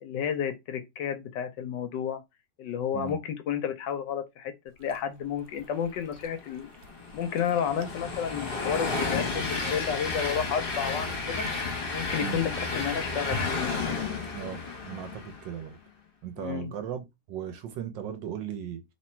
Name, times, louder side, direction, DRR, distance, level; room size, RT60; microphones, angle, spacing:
voice 1, 0.0-2.2 2.6-4.5 4.8-6.7 7.1-11.5 11.9-14.1 16.4-16.7, left 8 dB, 70° left, 1.1 m, -31 dB
Chewing mastication, 4.7-14.8, left 1 dB, 90° right, 1.7 m, -48 dB
Train, 6.2-15.6, left 4 dB, 35° left, 0.9 m, -32 dB
voice 2, 14.3-15.8 16.2-18.8, right 9 dB, 70° right, 1.2 m, -37 dB
3.1 x 2.9 x 4.3 m
omnidirectional pair, 2.3 m